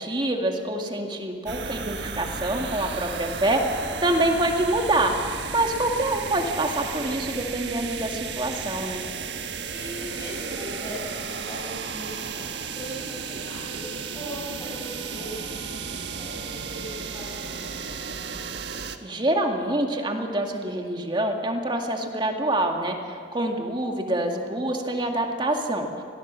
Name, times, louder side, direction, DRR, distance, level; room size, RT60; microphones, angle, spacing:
voice 1, 0.0-5.1 5.5-9.0 19.0-25.9, right 1 dB, 25° right, 3 dB, 2.0 m, -26 dB
sound 1, 1.5-19.0, right 5 dB, 85° right, 1.4 m, -34 dB
voice 2, 9.7-15.7 16.2-17.9, equal, 20° left, -7 dB, 7.8 m, -39 dB
25.0 x 18.0 x 7.5 m, 2.2 s
head